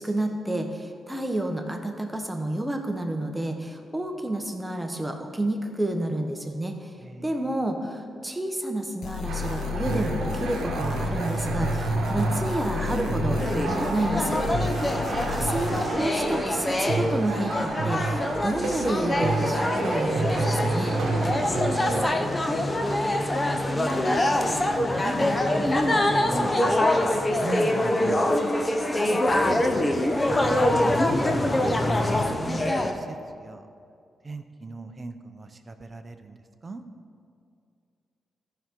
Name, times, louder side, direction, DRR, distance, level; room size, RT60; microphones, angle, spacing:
voice 1, 0.0-6.9 7.2-20.9 28.8-29.2, right 1 dB, 10° right, 3 dB, 1.1 m, -30 dB
voice 2, 7.0-7.6 22.0-23.0 23.5-28.3 29.1-30.0 30.3-31.8 32.1-33.7 34.2-36.4 36.6-36.8, right 3 dB, 35° right, 8 dB, 0.7 m, -38 dB
sound 1, 9.0-15.9, left 7 dB, 70° left, 0.5 m, -34 dB
sound 2, 9.3-22.2, right 3 dB, 90° right, 0.9 m, -29 dB
sound 3, 13.4-32.9, left 1 dB, 25° left, 0.8 m, -25 dB
14.0 x 5.7 x 3.8 m, 2.4 s
cardioid pair, 70°, 0 cm